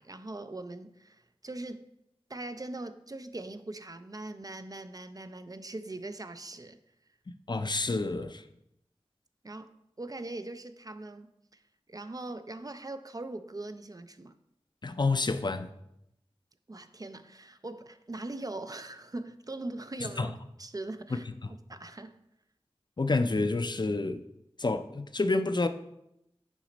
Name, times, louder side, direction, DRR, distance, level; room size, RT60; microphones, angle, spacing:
voice 1, 0.0-1.8 2.3-6.8 9.4-9.7 10.0-11.3 11.9-14.3 16.7-20.3 20.6-22.1, right 2 dB, 35° right, 0.4 m, -41 dB
voice 2, 7.3-8.4 14.8-15.7 20.2-20.3 21.1-21.2 23.0-24.2 24.6-25.7, left 3 dB, 45° left, 0.4 m, -28 dB
6.0 x 5.1 x 4.0 m
wide cardioid pair, 55°, 10 cm